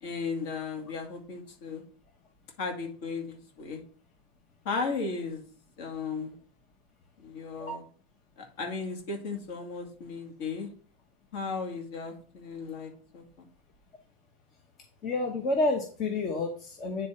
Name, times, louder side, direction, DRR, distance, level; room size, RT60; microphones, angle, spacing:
voice 1, 0.0-1.8 2.6-3.8 4.6-5.4 5.8-6.4 7.2-7.8 8.6-10.7 11.3-13.5, left 4 dB, 55° left, 3 dB, 2.0 m, -35 dB
voice 2, 15.0-17.1, left 2 dB, 25° left, 3 dB, 0.9 m, -29 dB
9.2 x 3.7 x 4.3 m, 0.43 s
supercardioid pair, 165°, 0 cm